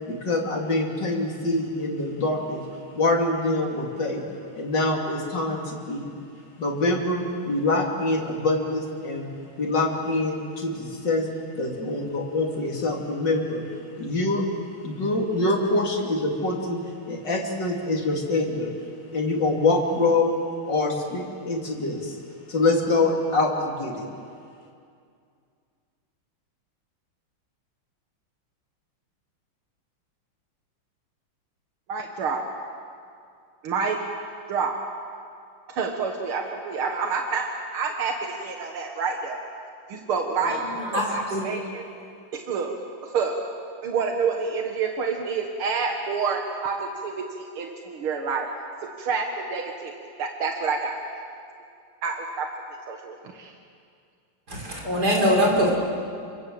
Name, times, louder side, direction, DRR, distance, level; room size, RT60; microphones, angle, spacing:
voice 1, 0.1-2.7 2.9-4.2 4.6-6.1 6.6-9.3 9.6-11.3 11.5-14.5 14.8-18.7 19.1-20.3 20.7-22.2 22.5-24.1, left 2 dB, 55° left, 0 dB, 3.8 m, -25 dB
voice 2, 31.9-32.4 33.6-34.0 34.5-34.8 35.7-37.5 37.7-39.4 39.9-40.6 40.9-41.9 42.3-42.7 43.0-43.4 43.8-48.5 49.0-49.9 50.2-51.2 52.0-52.5 52.9-53.5, right 5 dB, 85° right, 2 dB, 2.5 m, -28 dB
voice 3, 40.4-41.5 54.5-55.7, equal, 45° right, -2 dB, 6.1 m, -23 dB
28.5 x 25.0 x 7.9 m, 2.4 s
omnidirectional pair, 2.3 m